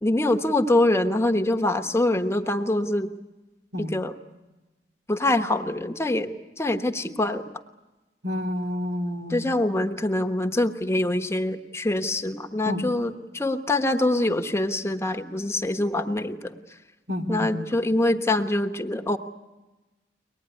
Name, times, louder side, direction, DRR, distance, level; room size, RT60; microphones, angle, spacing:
voice 1, 0.0-3.1 3.8-4.1 5.1-7.5 9.3-16.6 17.3-19.2, left 1 dB, 15° left, 6 dB, 1.1 m, -24 dB
voice 2, 8.2-9.5 12.7-12.9 17.1-17.7, left 1 dB, 85° right, 4 dB, 3.1 m, -29 dB
23.5 x 19.5 x 9.9 m, 1.1 s
head